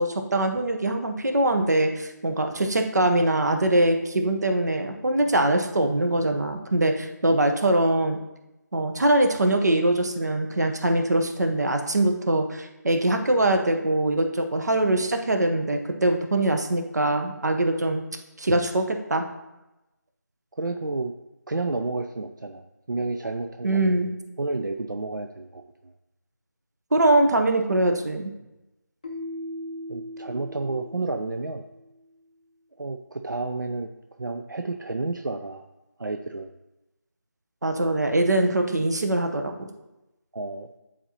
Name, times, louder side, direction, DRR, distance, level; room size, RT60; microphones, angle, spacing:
voice 1, 0.0-8.2 8.7-18.0 18.4-19.2 23.6-24.1 26.9-28.3 37.6-39.7, right 1 dB, 65° right, 5 dB, 0.9 m, -23 dB
voice 2, 20.6-21.1 21.5-25.6 29.9-31.6 32.8-33.9 34.2-35.6 36.0-36.5 40.3-40.7, right 3 dB, 90° right, 5 dB, 0.5 m, -31 dB
Keyboard (musical), 29.0-31.9, left 1 dB, 20° left, 0.5 m, -38 dB
9.9 x 4.3 x 2.8 m, 0.97 s
figure-of-eight pair, 165°, 10 cm